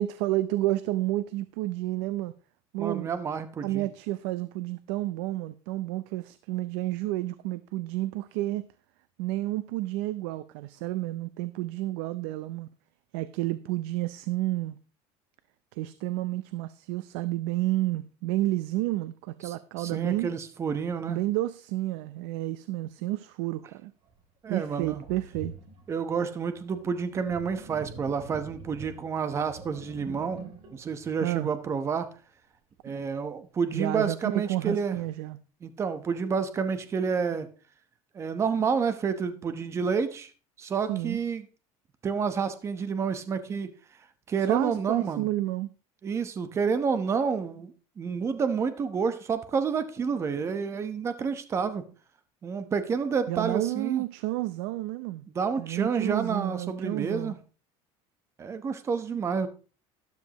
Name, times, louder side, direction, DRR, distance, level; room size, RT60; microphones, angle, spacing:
voice 1, 0.0-2.3 2.7-3.1 3.6-8.7 9.2-12.7 13.1-14.8 15.7-20.3 21.1-23.9 24.5-25.5 31.2-31.5 32.9-33.0 33.7-35.4 40.9-41.2 44.5-45.7 53.3-55.3 55.6-57.3, right 16 dB, 80° right, 0.6 m, -30 dB
voice 2, 2.8-3.9 19.4-21.2 24.4-25.0 25.9-30.4 30.7-32.1 32.8-35.0 35.6-37.5 38.1-40.3 40.6-41.4 42.0-43.7 44.3-45.3 46.0-51.8 52.4-54.0 55.3-57.4 58.4-59.5, right 6 dB, 20° right, 1.0 m, -29 dB
Sink (filling or washing), 24.1-24.2 24.8-32.1, right 4 dB, 40° right, 2.8 m, -46 dB
12.5 x 12.0 x 3.0 m
cardioid pair, 170°, 13 cm